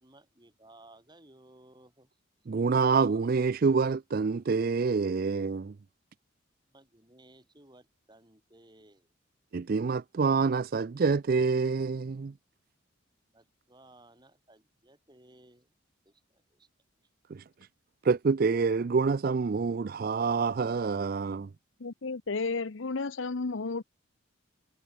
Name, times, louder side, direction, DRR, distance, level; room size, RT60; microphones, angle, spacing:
voice 1, 0.0-2.1 6.7-9.0 13.3-15.7, right 1 dB, 20° right, 3.5 m, -58 dB
voice 2, 2.5-5.7 9.5-12.3 17.3-17.4 18.0-21.5, right 4 dB, 45° right, 0.4 m, -27 dB
voice 3, 21.8-23.8, left 4 dB, 65° left, 0.8 m, -32 dB
head